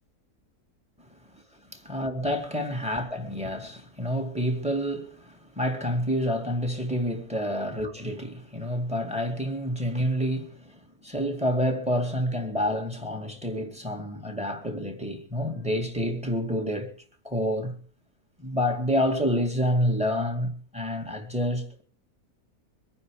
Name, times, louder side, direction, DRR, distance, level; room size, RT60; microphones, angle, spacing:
voice 1, 1.9-16.9 17.2-17.8 18.4-21.8, equal, 5° right, 2.2 m, -28 dB
23.5 x 9.6 x 5.0 m
omnidirectional pair, 1.6 m